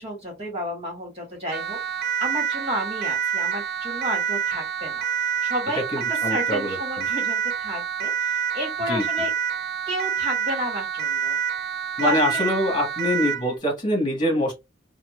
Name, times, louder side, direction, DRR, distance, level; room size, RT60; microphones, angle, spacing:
voice 1, 0.0-1.8 2.2-5.1 5.4-5.8 6.3-9.3 9.9-11.4 12.0-12.4, equal, 30° right, 2.2 m, -31 dB
Siren, 1.5-13.5, right 8 dB, 55° right, 0.6 m, -27 dB
voice 2, 5.9-7.1 8.9-9.0 12.0-14.5, left 1 dB, 25° left, 1.5 m, -24 dB
4.2 x 2.5 x 2.5 m
head